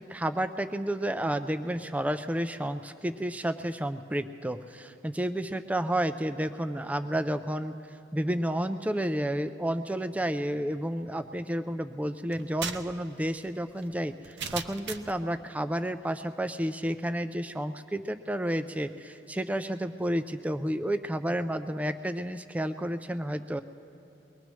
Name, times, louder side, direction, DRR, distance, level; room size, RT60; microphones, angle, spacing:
voice 1, 0.0-23.6, right 1 dB, 5° right, 10 dB, 0.3 m, -31 dB
sound 1, 12.3-15.2, right 6 dB, 60° right, 0.6 m, -38 dB
23.0 x 19.5 x 3.1 m, 2.8 s
head